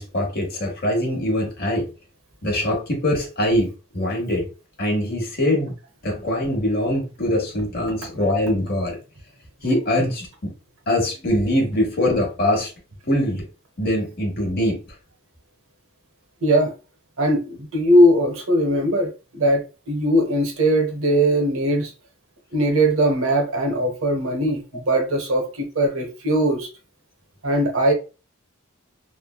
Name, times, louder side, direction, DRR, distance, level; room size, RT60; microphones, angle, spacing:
voice 1, 0.0-1.9 2.4-4.5 4.8-5.7 6.0-9.0 9.6-10.5 10.9-12.7 13.1-13.5 13.8-14.8, left 1 dB, 45° left, 1.0 m, -23 dB
voice 2, 16.4-16.7 17.2-21.9 22.5-26.7 27.4-27.9, equal, 70° right, 0.8 m, -20 dB
3.2 x 2.1 x 2.2 m
head